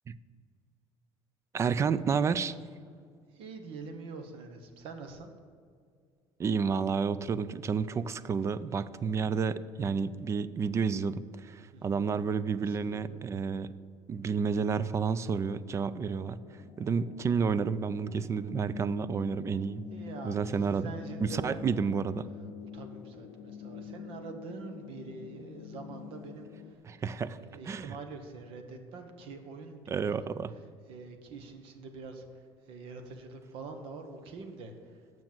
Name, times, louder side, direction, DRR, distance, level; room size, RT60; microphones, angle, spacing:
voice 1, 1.5-2.5 6.4-13.7 14.1-19.8 20.2-20.9 21.2-22.3 26.8-27.4 27.6-28.0 29.9-30.5, right 6 dB, 30° right, 16 dB, 0.4 m, -30 dB
voice 2, 3.3-5.3 11.7-12.1 12.6-13.2 19.9-21.6 22.7-26.5 27.2-30.4 30.9-32.2 32.7-34.7, right 4 dB, 70° right, 6 dB, 1.2 m, -45 dB
sound 1, 15.7-26.7, left 7 dB, 75° left, 0.6 m, -45 dB
7.2 x 6.1 x 7.5 m, 2.2 s
cardioid pair, 110°, 10 cm